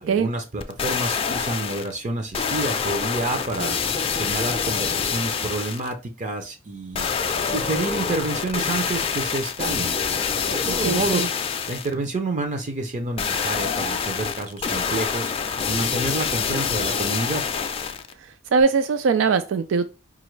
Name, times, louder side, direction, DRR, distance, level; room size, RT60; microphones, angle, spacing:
voice 1, 0.0-3.8 4.1-7.1 7.4-9.9 10.5-11.3 11.7-15.3 15.7-17.4, right 2 dB, 40° right, 0.5 m, -28 dB
sound 1, 0.6-1.9 2.3-5.9 6.9-11.9 13.2-18.1 18.6-18.7, left 6 dB, 30° left, 0.4 m, -26 dB
voice 2, 10.7-11.3 18.5-19.9, right 5 dB, 90° right, 0.4 m, -21 dB
5.0 x 2.4 x 3.1 m
head